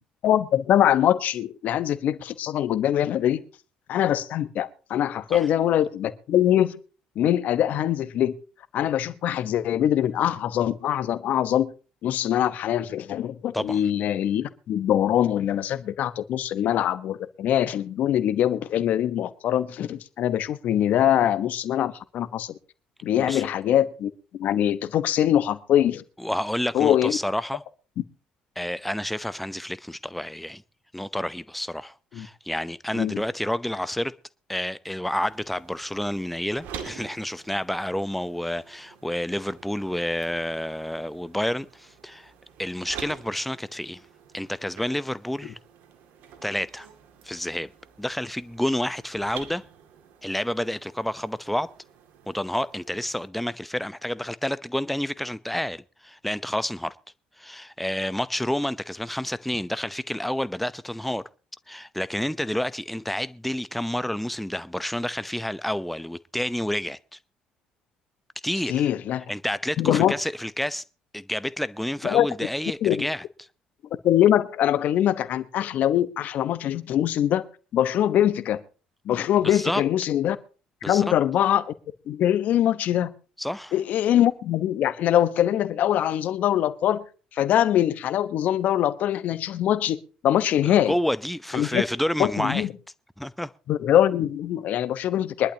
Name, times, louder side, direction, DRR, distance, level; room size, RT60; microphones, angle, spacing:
voice 1, 0.2-3.4 3.9-6.8 7.2-8.3 8.7-11.7 12.0-22.5 23.0-26.0 26.7-27.2 32.1-32.3 32.9-33.2 68.7-69.3 69.8-70.1 72.0-72.3 72.8-73.1 74.0-77.4 77.7-78.6 79.0-80.4 80.8-81.7 82.1-83.1 83.7-87.0 87.3-90.0 90.2-90.9 91.5-91.8 92.2-92.7 93.7-95.5, left 11 dB, 60° left, 1.1 m, -23 dB
voice 2, 23.2-23.5 26.2-27.6 28.6-30.6 30.9-34.1 34.5-42.3 42.6-44.0 44.3-45.6 46.4-46.9 47.2-47.7 48.0-49.6 50.2-51.7 52.3-57.0 57.4-61.2 61.7-67.2 68.4-68.9 69.3-70.8 71.1-73.2 79.4-79.8 80.8-81.1 83.4-83.7 90.6-92.7 93.2-93.5, left 1 dB, 5° left, 0.7 m, -29 dB
sound 1, 35.2-53.3, right 7 dB, 70° right, 2.3 m, -47 dB
23.5 x 11.5 x 2.9 m
hypercardioid pair, 60°, 3 cm